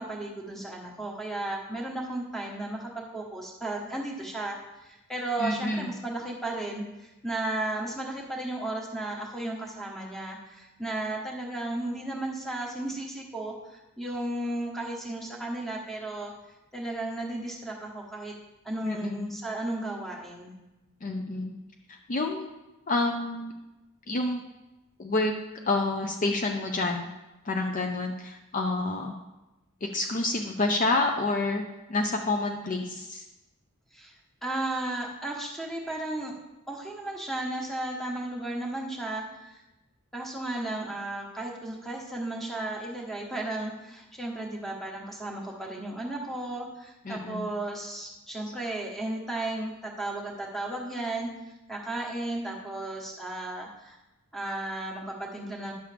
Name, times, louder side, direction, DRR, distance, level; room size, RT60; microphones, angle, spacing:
voice 1, 0.0-16.3 16.7-18.3 18.6-20.5 33.9-34.1 34.4-36.3 36.7-39.6 40.1-51.3 51.7-54.0 54.3-55.7, right 2 dB, ahead, -1 dB, 1.1 m, -34 dB
voice 2, 5.4-6.0 18.8-19.3 21.0-21.6 22.1-22.5 22.9-23.5 24.1-24.4 25.0-25.3 25.7-27.1 27.4-29.1 29.8-31.6 31.9-33.2 47.0-47.5, left 2 dB, 35° left, 3 dB, 0.4 m, -28 dB
10.5 x 6.4 x 3.3 m, 1.0 s
head